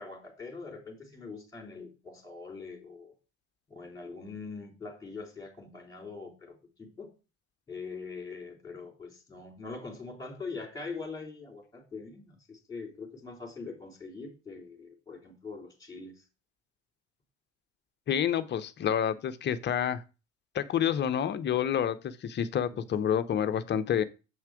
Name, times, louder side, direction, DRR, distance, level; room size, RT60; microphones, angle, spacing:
voice 1, 0.0-3.1 3.7-7.1 7.7-16.2 22.7-22.9, left 4 dB, 10° left, 3.6 m, -43 dB
voice 2, 18.1-20.0 20.5-24.0, left 9 dB, 30° left, 0.8 m, -28 dB
7.7 x 5.9 x 4.8 m
figure-of-eight pair, 70°, 38 cm